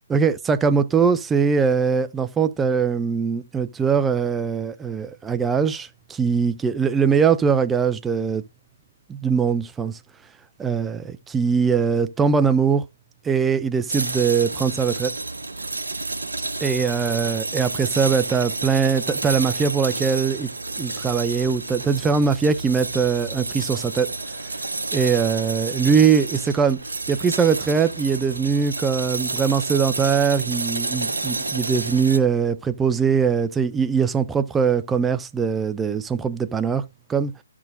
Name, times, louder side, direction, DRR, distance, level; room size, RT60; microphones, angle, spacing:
voice 1, 0.1-8.4 9.1-10.0 10.6-12.8 13.2-15.1 16.6-20.5 20.8-24.1 24.9-26.8 27.1-36.8 37.1-37.3, right 6 dB, 10° right, 0.5 m, -21 dB
sound 1, 13.9-32.2, right 3 dB, 75° right, 1.0 m, -30 dB
13.5 x 6.1 x 2.5 m
figure-of-eight pair, 130°, 0 cm